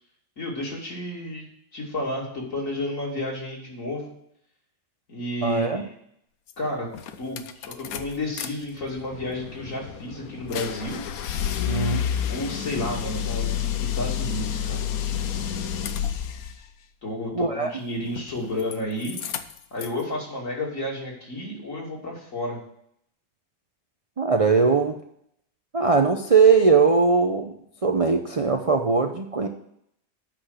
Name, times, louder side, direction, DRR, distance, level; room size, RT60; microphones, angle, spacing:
voice 1, 0.4-4.1 5.1-5.9 6.6-6.9 7.2-11.1 12.3-14.9 17.0-19.2 19.7-22.6, left 1 dB, 50° left, -2 dB, 3.1 m, -31 dB
voice 2, 5.4-5.9 11.7-12.0 17.3-17.7 24.2-25.0 25.7-27.5 27.8-29.5, right 4 dB, 65° right, 4 dB, 0.3 m, -20 dB
sound 1, 6.5-6.6 6.9-8.5 8.8-16.6 18.1-18.8 19.0-20.0, left 9 dB, 65° left, 1.1 m, -30 dB
8.7 x 5.9 x 8.0 m, 0.72 s
omnidirectional pair, 1.8 m